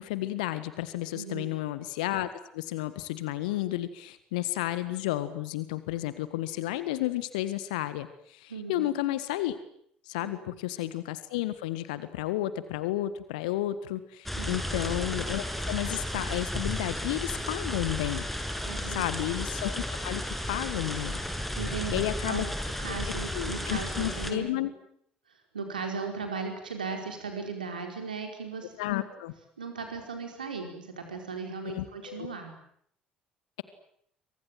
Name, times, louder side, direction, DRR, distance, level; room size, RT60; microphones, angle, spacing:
voice 1, 0.0-9.6 10.1-18.2 18.9-21.2 21.9-22.4 23.3-24.7 28.8-29.3 31.6-32.3, left 15 dB, 70° left, 13 dB, 1.6 m, -32 dB
voice 2, 1.1-1.5 8.5-8.8 10.2-10.5 14.3-14.7 18.6-19.0 21.3-22.5 22.8-24.7 25.5-29.2 29.6-32.5, right 5 dB, 80° right, 4 dB, 4.9 m, -37 dB
sound 1, 14.3-24.3, left 1 dB, 5° left, 6.7 m, -33 dB
28.5 x 24.5 x 7.7 m, 0.68 s
figure-of-eight pair, 55°, 5 cm